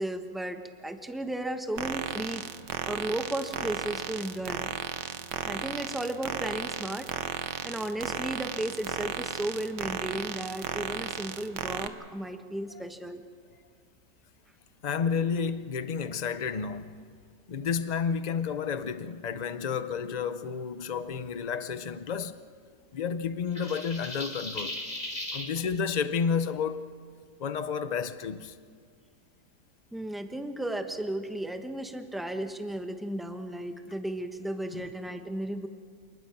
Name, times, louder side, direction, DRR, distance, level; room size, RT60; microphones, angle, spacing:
voice 1, 0.0-2.4 2.8-4.7 5.4-7.1 7.4-13.2 25.4-25.7 29.9-35.7, right 1 dB, ahead, 1.0 m, -34 dB
sound 1, 1.8-11.9, right 8 dB, 90° right, 1.6 m, -35 dB
voice 2, 14.8-17.0 17.5-22.4 22.9-24.8 25.3-26.9 27.4-28.6 34.7-34.9, left 6 dB, 60° left, 0.4 m, -31 dB
sound 2, 23.5-25.5, left 1 dB, 25° left, 3.2 m, -37 dB
27.5 x 20.0 x 6.0 m
omnidirectional pair, 1.8 m